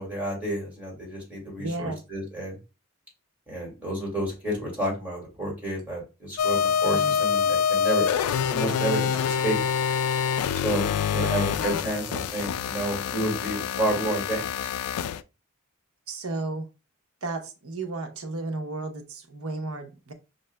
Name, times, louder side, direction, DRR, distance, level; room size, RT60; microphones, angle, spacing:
voice 1, 0.0-2.6 3.5-8.1 8.5-9.6 10.6-10.8 11.1-14.7, right 1 dB, 10° right, 2.1 m, -30 dB
voice 2, 1.6-2.0 6.9-7.2 11.1-11.6 16.1-16.7 17.2-20.1, right 2 dB, 75° right, 0.9 m, -33 dB
sound 1, 6.4-15.2, left 7 dB, 80° left, 0.3 m, -26 dB
6.0 x 2.6 x 2.2 m
head